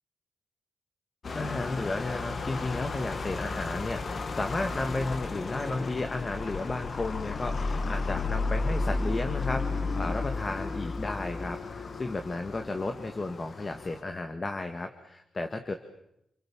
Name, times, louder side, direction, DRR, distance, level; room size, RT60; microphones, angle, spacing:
sound 1, 1.2-14.0, left 3 dB, 50° left, 2.1 m, -33 dB
voice 1, 1.4-15.7, left 2 dB, 35° left, 6 dB, 2.0 m, -33 dB
29.5 x 23.5 x 7.5 m, 0.81 s
cardioid pair, 75°, 0 cm